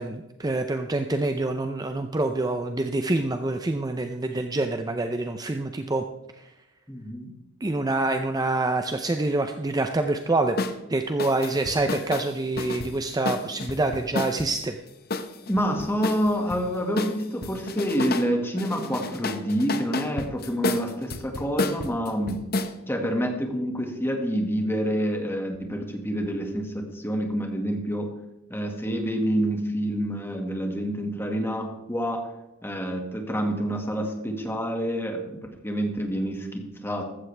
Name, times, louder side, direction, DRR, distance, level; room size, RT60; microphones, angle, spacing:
voice 1, 0.0-6.0 6.4-6.5 7.6-10.6 10.9-14.8, right 2 dB, 20° right, 6 dB, 0.5 m, -26 dB
voice 2, 6.9-7.3 15.5-22.4 22.9-28.1 28.5-32.3 32.6-37.1, equal, 10° left, 3 dB, 1.8 m, -27 dB
sound 1, 10.6-10.8 11.2-14.5 15.1-16.6 17.0-18.3 18.6-22.7, left 3 dB, 45° left, 0.9 m, -31 dB
15.0 x 12.5 x 3.4 m, 0.94 s
head